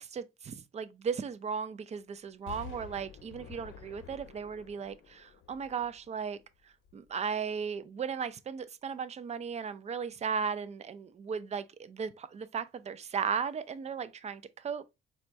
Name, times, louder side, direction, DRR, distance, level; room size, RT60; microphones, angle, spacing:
voice 1, 0.0-6.4 6.9-14.9, right 6 dB, 35° right, 0.4 m, -36 dB
Explosion, 2.5-6.4 6.8-6.9, left 7 dB, 80° left, 0.7 m, -49 dB
4.1 x 2.2 x 2.6 m
cardioid pair, 90°, 20 cm